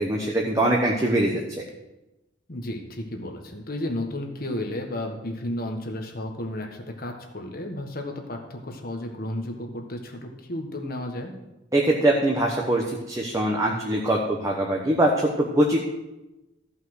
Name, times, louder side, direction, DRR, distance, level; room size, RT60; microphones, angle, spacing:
voice 1, 0.0-1.4 11.7-15.8, right 1 dB, 15° right, -2 dB, 1.1 m, -22 dB
voice 2, 2.5-11.3, left 1 dB, 50° left, 3 dB, 1.5 m, -33 dB
14.0 x 5.6 x 6.2 m, 0.99 s
head